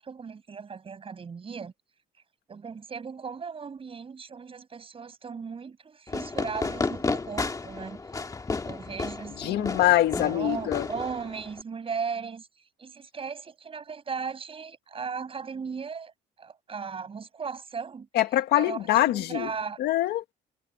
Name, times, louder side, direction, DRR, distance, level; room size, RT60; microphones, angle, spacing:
voice 1, 0.0-1.7 2.5-8.0 8.6-9.8 10.1-12.5 12.8-16.1 16.4-18.1 18.5-19.8, right 6 dB, 35° right, 7.7 m, -37 dB
Fireworks, 6.1-11.6, left 3 dB, 20° left, 1.9 m, -32 dB
voice 2, 9.4-10.9 18.1-19.5 19.8-20.2, left 14 dB, 75° left, 1.9 m, -24 dB
cardioid pair, 110°, 17 cm